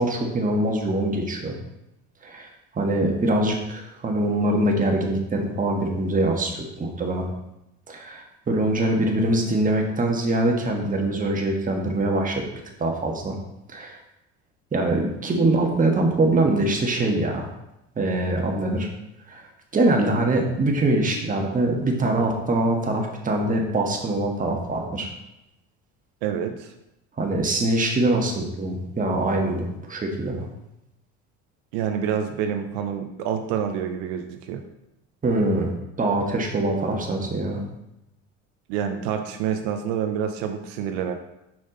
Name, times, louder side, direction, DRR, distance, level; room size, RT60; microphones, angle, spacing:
voice 1, 0.0-1.6 2.2-7.2 7.9-12.5 12.8-13.4 13.7-14.0 14.7-17.5 18.0-18.9 19.3-19.5 19.7-25.1 27.2-30.5 35.2-37.6, right 2 dB, 25° right, 1 dB, 1.4 m, -23 dB
voice 2, 26.2-26.7 31.7-34.6 38.7-41.1, right 8 dB, 85° right, 5 dB, 0.7 m, -27 dB
6.0 x 5.3 x 3.8 m, 0.88 s
supercardioid pair, 100°, 33 cm